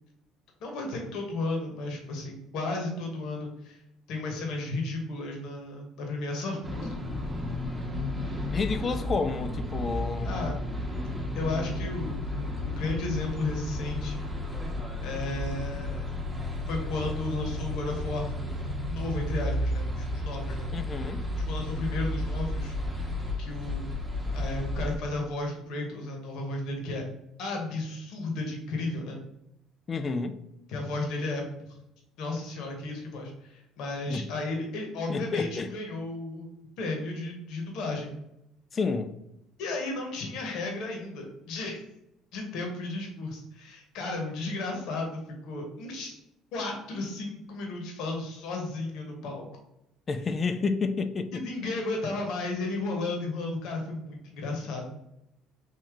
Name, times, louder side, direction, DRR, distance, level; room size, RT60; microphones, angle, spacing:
voice 1, 0.6-3.8 4.1-6.9 10.2-10.5 11.3-14.3 15.0-16.0 16.7-18.5 18.9-20.7 21.3-22.8 23.4-23.9 24.3-27.0 27.4-29.2 30.7-31.7 32.2-36.5 36.8-38.1 39.6-41.8 42.3-46.1 46.5-49.4 51.3-54.9, left 2 dB, 70° left, 1.0 m, -34 dB
sound 1, 6.6-25.0, left 1 dB, 15° right, 0.9 m, -33 dB
voice 2, 8.5-10.4 20.7-21.2 29.9-30.4 34.1-34.3 35.1-35.7 38.7-39.2 50.1-51.4, left 4 dB, 35° left, 0.3 m, -30 dB
3.2 x 2.7 x 3.5 m
supercardioid pair, 95°, 0 cm